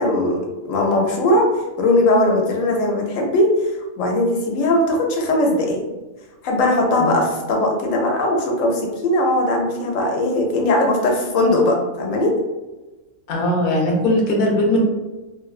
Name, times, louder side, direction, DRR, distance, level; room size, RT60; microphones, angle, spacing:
voice 1, 0.0-1.5 1.8-5.8 6.4-12.4, left 1 dB, 85° left, 1 dB, 1.0 m, -19 dB
voice 2, 13.3-14.8, left 1 dB, 55° left, -1 dB, 0.7 m, -19 dB
2.5 x 2.1 x 2.3 m, 1.1 s
omnidirectional pair, 1.3 m